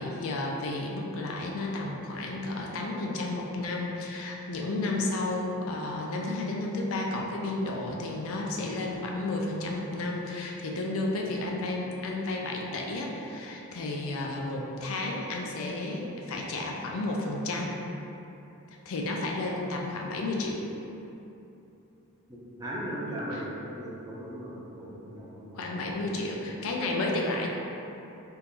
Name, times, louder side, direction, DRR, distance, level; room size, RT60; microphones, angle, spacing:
voice 1, 0.0-17.8 18.9-20.6 23.3-23.4 25.5-27.5, left 2 dB, 65° left, -1 dB, 0.4 m, -32 dB
voice 2, 22.3-26.0, equal, 15° right, -7 dB, 0.6 m, -38 dB
3.6 x 2.5 x 2.9 m, 2.9 s
head